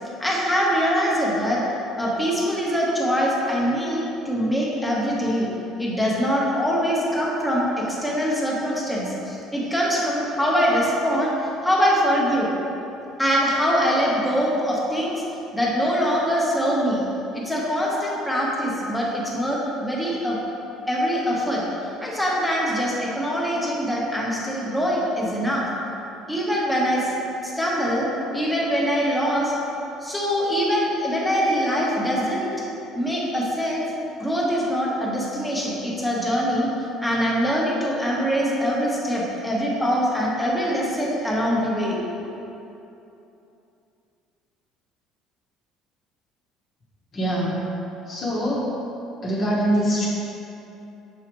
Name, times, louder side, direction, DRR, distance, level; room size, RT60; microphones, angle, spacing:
voice 1, 0.2-1.6 2.0-5.5 5.8-11.3 11.6-12.5 13.2-15.2 15.5-17.0 17.3-20.4 20.9-21.6 22.0-25.7 26.3-27.1 27.4-28.1 28.3-29.5 30.0-32.5 32.9-33.8 34.2-36.7 37.0-42.0, equal, 5° left, -5 dB, 1.2 m, -23 dB
voice 2, 47.1-47.6 48.1-48.7 49.2-50.1, equal, 40° left, -7 dB, 1.2 m, -23 dB
6.5 x 4.8 x 3.1 m, 2.9 s
cardioid pair, 120°, 0 cm